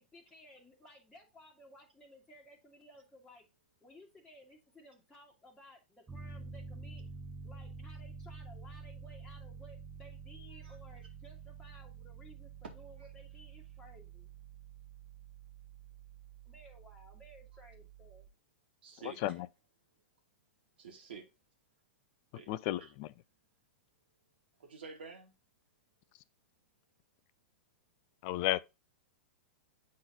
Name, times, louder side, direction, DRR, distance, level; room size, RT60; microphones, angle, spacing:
voice 1, 0.0-3.5 3.8-7.1 7.4-14.3 16.5-18.3, left 1 dB, 5° left, 1.8 m, -58 dB
Piano, 6.1-18.3, right 5 dB, 10° right, 1.0 m, -49 dB
voice 2, 18.8-19.2 20.8-21.3 22.3-22.9 24.6-25.3, right 5 dB, 65° right, 2.4 m, -50 dB
voice 3, 22.5-23.1 28.2-28.6, left 15 dB, 40° left, 0.4 m, -33 dB
8.5 x 3.9 x 3.9 m
figure-of-eight pair, 100°, 6 cm